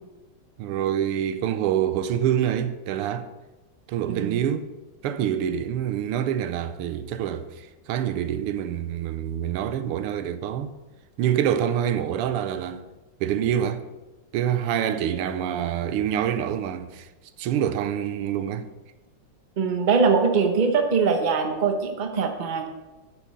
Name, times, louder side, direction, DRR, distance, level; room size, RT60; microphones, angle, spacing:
voice 1, 0.6-3.3 3.9-4.7 5.0-10.7 11.2-12.8 13.2-13.8 14.3-17.1 17.4-18.7, right 10 dB, 85° right, 1.6 m, -26 dB
voice 2, 4.1-4.4 19.6-22.7, right 5 dB, 45° right, 0.6 m, -22 dB
9.2 x 6.3 x 6.5 m
omnidirectional pair, 2.4 m